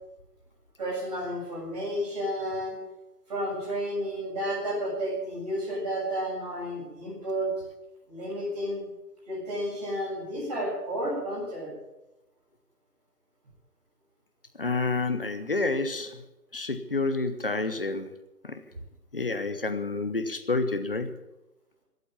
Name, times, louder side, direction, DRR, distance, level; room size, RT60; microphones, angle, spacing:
voice 1, 0.8-2.8 3.3-7.5 8.1-8.9 9.3-11.7, equal, 25° right, -5 dB, 7.1 m, -31 dB
voice 2, 14.5-16.2 16.5-18.1 18.4-18.6 19.1-21.1, left 3 dB, 35° left, 9 dB, 1.1 m, -29 dB
16.0 x 8.1 x 9.5 m, 0.98 s
figure-of-eight pair, 160°, 47 cm